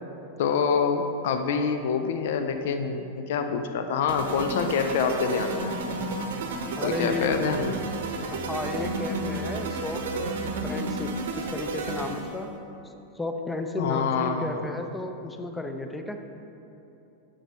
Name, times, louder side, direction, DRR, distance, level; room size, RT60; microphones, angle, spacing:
voice 1, 0.4-5.8 6.8-7.7 13.8-14.7, left 6 dB, 55° left, 7 dB, 0.4 m, -26 dB
sound 1, 2.5-2.6 3.0-3.1 3.6-3.7 4.6-10.7, right 3 dB, 35° right, 0.9 m, -45 dB
sound 2, 4.1-12.4, right 2 dB, 60° right, 0.8 m, -32 dB
sound 3, 4.5-8.5, left 3 dB, 35° left, 1.8 m, -44 dB
voice 2, 6.8-7.5 8.3-12.5 12.8-16.2, left 2 dB, 10° left, 6 dB, 0.6 m, -33 dB
9.9 x 6.8 x 3.3 m, 2.9 s
figure-of-eight pair, 90°, 0 cm